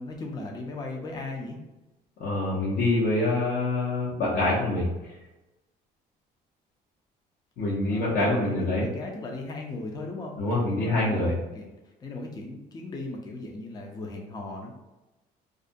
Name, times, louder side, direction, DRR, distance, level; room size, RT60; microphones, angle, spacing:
voice 1, 0.0-1.6 7.9-14.7, left 2 dB, 25° left, 1 dB, 0.5 m, -37 dB
voice 2, 2.2-5.1 7.6-8.9 10.4-11.4, left 2 dB, 60° left, -7 dB, 0.7 m, -25 dB
2.4 x 2.1 x 2.5 m, 1.0 s
cardioid pair, 110°, 17 cm